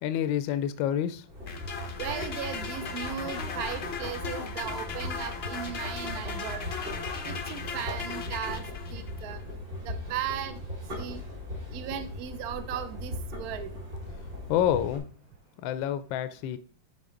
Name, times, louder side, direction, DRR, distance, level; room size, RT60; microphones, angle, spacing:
voice 1, 0.0-1.3 1.8-1.9 14.5-15.1 15.6-16.6, left 10 dB, 75° left, 1.3 m, -28 dB
sound 1, 1.3-15.0, left 1 dB, 55° right, 4.2 m, -39 dB
sound 2, 1.5-9.2, left 5 dB, 55° left, 0.6 m, -37 dB
voice 2, 2.0-6.7 7.2-9.4 9.8-10.6 11.0-11.2 11.7-13.7, right 9 dB, 75° right, 0.8 m, -37 dB
11.0 x 3.8 x 3.8 m
omnidirectional pair, 2.3 m